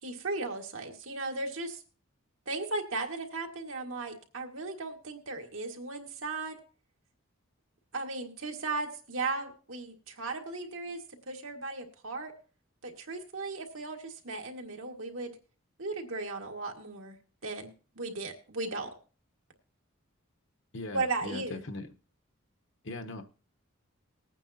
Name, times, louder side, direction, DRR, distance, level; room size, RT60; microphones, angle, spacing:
voice 1, 0.0-1.8 2.5-6.6 7.9-12.3 12.8-15.3 15.8-17.2 17.4-17.7 18.0-18.9 20.9-21.6, right 3 dB, 75° right, 2 dB, 1.8 m, -36 dB
voice 2, 20.7-21.9 22.8-23.2, left 2 dB, 60° left, 6 dB, 1.1 m, -39 dB
20.0 x 9.0 x 2.8 m, 0.37 s
head